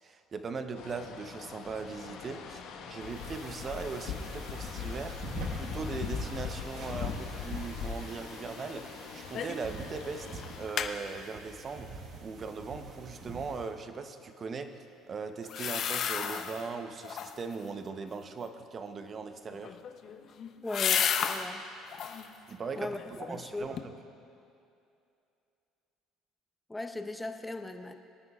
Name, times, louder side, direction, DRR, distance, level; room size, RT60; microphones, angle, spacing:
voice 1, 0.0-19.8 22.5-24.0, right 4 dB, 35° right, 8 dB, 0.8 m, -39 dB
sound 1, 0.8-10.7, left 6 dB, 75° left, 1.3 m, -40 dB
sound 2, 3.1-13.8, right 3 dB, 60° right, 1.4 m, -46 dB
sound 3, 9.3-9.7 10.0-10.1 10.4-10.9 15.4-16.6 17.0-17.5 19.5-21.5 21.9-22.3 22.8-23.4 23.8-23.9, left 8 dB, 55° left, 0.7 m, -32 dB
voice 2, 20.6-21.7 22.8-23.0 23.3-23.7 26.7-27.9, left 2 dB, 10° left, 7 dB, 0.7 m, -38 dB
23.5 x 9.5 x 2.4 m, 2.7 s
supercardioid pair, 95°, 0 cm